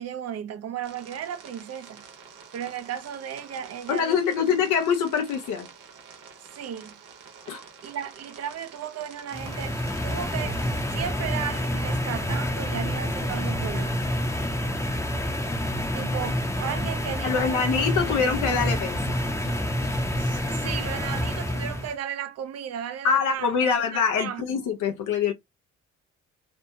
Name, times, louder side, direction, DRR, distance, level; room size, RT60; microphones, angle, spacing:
voice 1, 0.0-2.0 2.5-4.2 6.6-7.0 7.8-9.8 10.0-10.6 10.9-14.1 15.9-17.8 18.2-18.4 20.1-24.6, right 9 dB, 55° right, 0.6 m, -35 dB
sound 1, 0.8-10.8, right 6 dB, 90° right, 0.9 m, -48 dB
voice 2, 3.9-5.7 7.5-7.6 17.2-19.2 23.0-25.3, left 6 dB, 80° left, 0.6 m, -24 dB
sound 2, 9.3-21.9, equal, 10° left, 0.6 m, -28 dB
2.6 x 2.2 x 2.7 m
cardioid pair, 90°, 30 cm